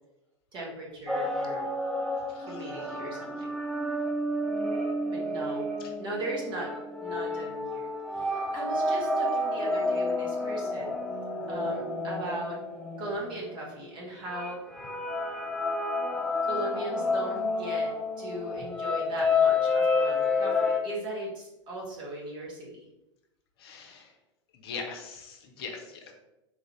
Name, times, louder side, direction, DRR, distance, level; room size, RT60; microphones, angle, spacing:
voice 1, 0.5-1.7 2.4-3.6 5.1-5.7 6.0-7.9 8.1-10.9 11.5-12.6 13.0-15.1 16.4-22.8, right 1 dB, 30° right, -4 dB, 1.0 m, -38 dB
sound 1, 1.1-13.6 14.3-20.8, left 2 dB, ahead, 0.3 m, -30 dB
voice 2, 2.3-2.8 23.6-24.1 24.5-26.1, left 5 dB, 50° left, 3 dB, 0.7 m, -41 dB
4.1 x 2.4 x 3.0 m, 0.92 s
figure-of-eight pair, 90°, 16 cm